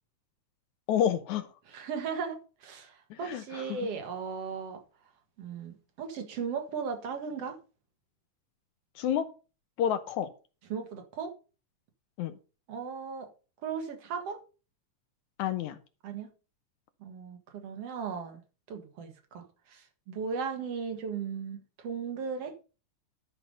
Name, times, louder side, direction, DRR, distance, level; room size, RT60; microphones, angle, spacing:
voice 1, 0.9-1.5 3.1-3.8 9.0-9.3 9.8-10.3 12.2-12.4 15.4-15.8, left 9 dB, 75° left, 2.1 m, -29 dB
voice 2, 1.7-4.8 5.4-7.6 10.7-11.3 12.7-13.3 13.6-14.4 16.0-16.3 17.0-18.4 18.7-22.6, right 6 dB, 55° right, 2.6 m, -37 dB
12.0 x 5.8 x 5.4 m
omnidirectional pair, 3.6 m